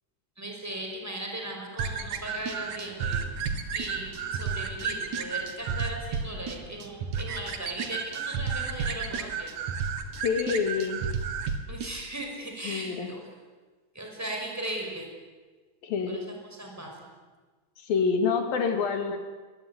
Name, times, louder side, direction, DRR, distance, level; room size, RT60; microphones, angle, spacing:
voice 1, 0.4-3.2 3.7-9.5 11.7-13.2 13.9-15.1 16.1-17.0, right 1 dB, 5° right, 1 dB, 5.6 m, -37 dB
sound 1, 1.8-11.9, right 6 dB, 60° right, 2.9 m, -32 dB
voice 2, 10.2-11.0 12.6-13.1 15.8-16.2 17.8-19.2, left 5 dB, 90° left, 6 dB, 4.5 m, -27 dB
23.5 x 21.0 x 9.8 m, 1.3 s
omnidirectional pair, 4.0 m